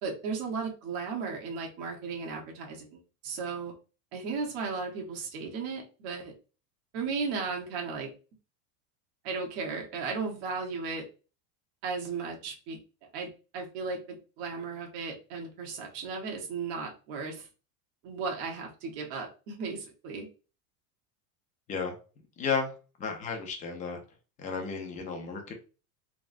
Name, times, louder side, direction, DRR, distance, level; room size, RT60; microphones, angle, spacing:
voice 1, 0.0-3.7 4.1-6.3 6.9-8.1 9.2-11.0 11.8-12.8 13.1-17.5 18.0-20.3, right 4 dB, 55° right, 0 dB, 1.2 m, -35 dB
voice 2, 22.4-22.7 23.0-24.0 24.4-25.5, left 5 dB, 20° left, 3 dB, 0.4 m, -33 dB
3.4 x 2.1 x 2.5 m, 0.34 s
supercardioid pair, 135°, 49 cm